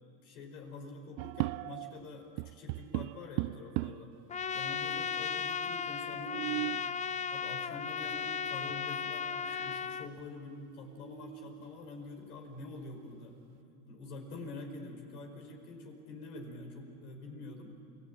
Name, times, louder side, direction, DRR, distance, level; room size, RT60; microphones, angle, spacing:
voice 1, 0.2-4.1 4.5-6.8 7.3-13.4 13.9-17.7, left 3 dB, 85° left, 3 dB, 5.3 m, -46 dB
sound 1, 1.2-2.0 2.4-4.2 4.9-5.0 5.2-5.3 6.0-6.9 8.7-8.8 9.3-9.7 10.2-10.3 10.8-11.7, right 23 dB, 60° right, 0.5 m, -38 dB
Trumpet, 4.3-10.1, left 6 dB, 15° left, 0.5 m, -36 dB
29.0 x 20.0 x 8.9 m, 2.7 s
supercardioid pair, 100°, 43 cm